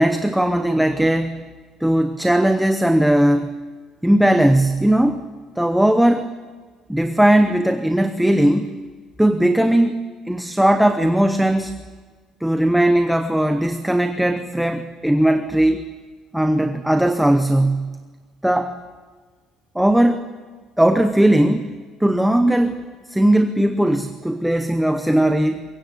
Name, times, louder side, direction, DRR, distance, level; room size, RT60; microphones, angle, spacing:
voice 1, 0.0-1.4 1.8-3.5 4.0-5.2 5.6-6.3 6.9-8.8 9.2-11.8 12.4-15.8 16.3-18.0 18.4-18.8 19.7-20.3 20.8-21.7 22.0-22.8 23.1-25.6, right 1 dB, ahead, 7 dB, 0.8 m, -18 dB
24.0 x 21.5 x 8.3 m, 1.5 s
cardioid pair, 180°, 0 cm